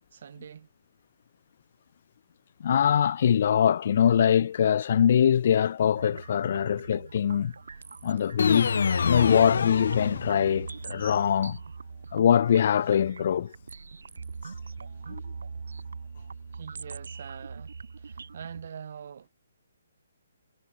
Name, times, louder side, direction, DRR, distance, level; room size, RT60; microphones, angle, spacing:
voice 1, 0.1-0.7 16.5-19.3, right 7 dB, 55° right, 5.6 m, -44 dB
voice 2, 2.6-7.5 8.0-8.7 9.0-11.6 12.1-13.5 15.1-15.2, left 8 dB, 45° left, 1.3 m, -23 dB
sound 1, 6.0-18.7, right 5 dB, 85° right, 3.9 m, -41 dB
sound 2, 8.4-10.7, left 6 dB, 70° left, 2.1 m, -27 dB
hypercardioid pair, 165°, 0 cm